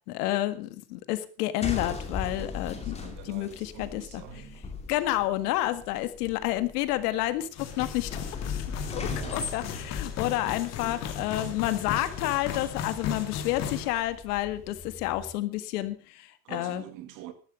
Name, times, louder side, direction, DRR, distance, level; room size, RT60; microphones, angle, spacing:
voice 1, 0.1-3.0 3.2-4.2 4.9-8.2 8.9-16.8, left 15 dB, 75° left, 1.9 m, -30 dB
sound 1, 1.6-15.3, left 4 dB, 15° left, 2.6 m, -39 dB
voice 2, 2.5-4.7 5.1-5.2 8.9-9.4 16.4-17.3, right 12 dB, 40° right, 2.0 m, -46 dB
sound 2, 7.6-13.9, left 8 dB, 35° left, 2.2 m, -36 dB
13.5 x 12.0 x 5.3 m
cardioid pair, 165°, 46 cm